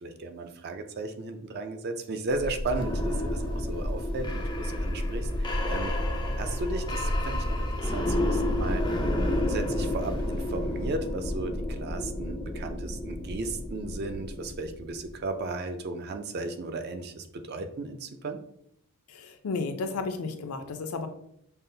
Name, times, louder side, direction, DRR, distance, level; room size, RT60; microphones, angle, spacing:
voice 1, 0.0-5.9 6.4-8.8 9.3-18.4, right 2 dB, 45° right, 7 dB, 0.4 m, -35 dB
sound 1, 2.3-15.1, left 1 dB, 20° left, 0.4 m, -30 dB
voice 2, 19.1-21.1, left 4 dB, 85° left, 7 dB, 0.5 m, -33 dB
5.4 x 2.0 x 2.7 m, 0.73 s
head